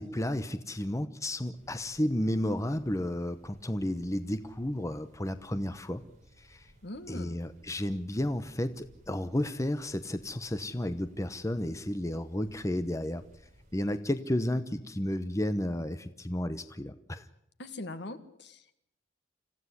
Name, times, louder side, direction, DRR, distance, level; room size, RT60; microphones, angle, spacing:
voice 1, 0.0-6.0 6.4-6.7 7.1-13.2 13.7-17.2, left 1 dB, 15° left, 11 dB, 0.9 m, -32 dB
sound 1, 1.5-14.0, equal, 40° right, 5.7 m, -60 dB
voice 2, 6.8-7.4 17.6-18.7, left 2 dB, 65° left, 10 dB, 2.0 m, -42 dB
26.5 x 15.5 x 9.8 m, 0.74 s
head